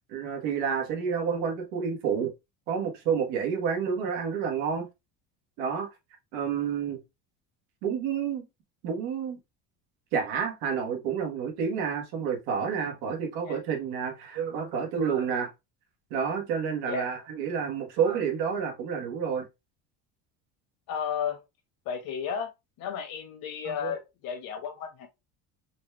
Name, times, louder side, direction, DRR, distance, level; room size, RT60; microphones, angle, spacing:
voice 1, 0.1-2.3 2.7-4.9 5.6-5.9 6.3-7.0 7.8-8.4 8.8-9.4 10.1-15.5 16.1-19.4 23.6-23.9, right 6 dB, 85° right, 1.4 m, -29 dB
voice 2, 20.9-21.4 21.8-22.5 22.8-25.1, left 7 dB, 60° left, 1.3 m, -33 dB
4.2 x 2.3 x 3.1 m
cardioid pair, 145°, 39 cm